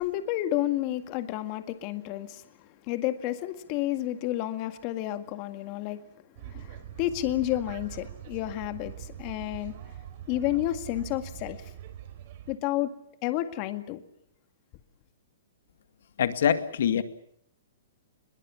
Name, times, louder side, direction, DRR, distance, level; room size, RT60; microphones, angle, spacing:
voice 1, 0.0-6.0 6.4-9.8 10.3-11.6 12.5-12.9 13.2-14.0, left 14 dB, 35° left, 9 dB, 1.9 m, -31 dB
sound 1, 6.4-12.6, right 11 dB, 45° right, 4.6 m, -43 dB
voice 2, 16.2-17.0, left 8 dB, 70° left, 10 dB, 2.1 m, -24 dB
22.0 x 22.0 x 8.5 m, 0.69 s
hypercardioid pair, 155°, 0 cm